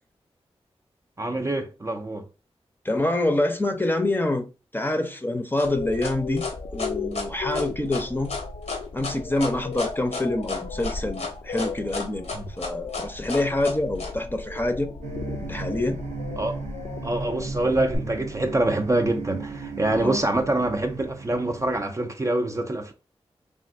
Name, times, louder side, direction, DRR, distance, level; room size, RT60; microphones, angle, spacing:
voice 1, 1.2-2.3 12.3-12.5 16.4-16.6 17.0-22.9, right 1 dB, 30° right, 0.4 m, -25 dB
voice 2, 2.8-4.4 4.7-8.3 8.9-12.3 12.6-14.9 15.4-16.0 19.9-20.2, left 1 dB, 20° left, 0.6 m, -26 dB
sound 1, 5.6-14.1, left 4 dB, 80° left, 1.0 m, -32 dB
sound 2, 5.6-18.0, left 4 dB, 65° left, 0.4 m, -36 dB
sound 3, 15.0-21.8, right 3 dB, 90° right, 0.4 m, -36 dB
3.4 x 2.5 x 2.5 m
cardioid pair, 45°, 11 cm